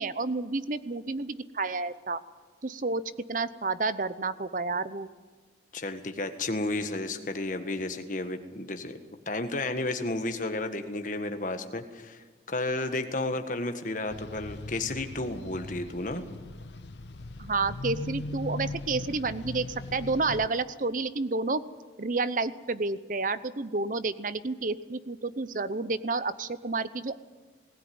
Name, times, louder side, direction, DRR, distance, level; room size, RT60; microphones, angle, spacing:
voice 1, 0.0-2.2 2.6-3.0 3.3-5.1 17.4-21.6 22.0-27.2, right 3 dB, 45° right, 14 dB, 0.8 m, -30 dB
voice 2, 5.7-9.0 9.2-16.2, left 2 dB, 45° left, 6 dB, 1.6 m, -32 dB
sound 1, 14.1-20.5, left 2 dB, 70° left, 0.7 m, -39 dB
19.0 x 16.5 x 9.5 m, 1.3 s
head